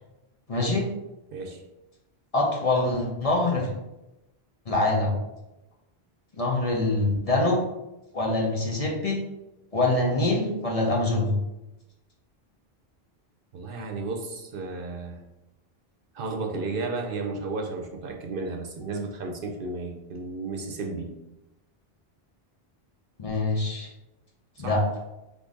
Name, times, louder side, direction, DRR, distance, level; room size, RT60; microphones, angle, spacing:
voice 1, 0.5-0.9 2.3-3.7 4.7-5.2 6.4-7.6 8.1-9.2 9.7-11.4 23.2-23.9 24.6-24.8, left 2 dB, 40° left, -1 dB, 0.7 m, -24 dB
voice 2, 13.5-15.2 16.1-21.1 24.6-24.8, right 3 dB, 65° right, 3 dB, 0.8 m, -33 dB
3.8 x 3.6 x 3.7 m, 0.98 s
omnidirectional pair, 1.1 m